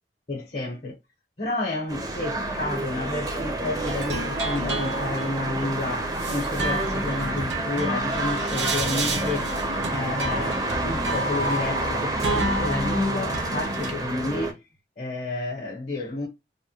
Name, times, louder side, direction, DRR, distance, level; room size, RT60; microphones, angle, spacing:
voice 1, 0.3-1.0 1.4-9.5 9.9-14.6 15.0-16.3, left 2 dB, 40° left, 0.8 m, -31 dB
sound 1, 1.9-14.5, right 2 dB, 20° right, 0.5 m, -29 dB
sound 2, 3.8-13.9, right 1 dB, 85° right, 0.8 m, -31 dB
3.4 x 2.1 x 2.8 m
head